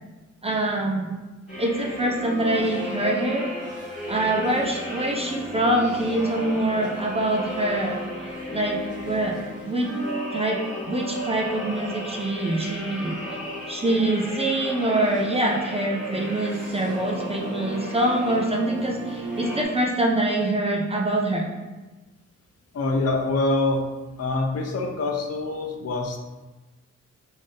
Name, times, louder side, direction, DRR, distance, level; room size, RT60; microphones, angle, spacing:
voice 1, 0.4-1.2 1.6-3.5 4.1-8.0 8.5-10.0 10.3-13.2 13.7-21.5, right 1 dB, 20° right, -1 dB, 0.4 m, -25 dB
sound 1, 1.5-19.6, equal, 5° right, 1.3 m, -34 dB
voice 2, 22.7-23.8 24.2-26.2, left 2 dB, 55° left, 2 dB, 0.5 m, -25 dB
3.7 x 2.6 x 3.3 m, 1.2 s
wide cardioid pair, 155°, 29 cm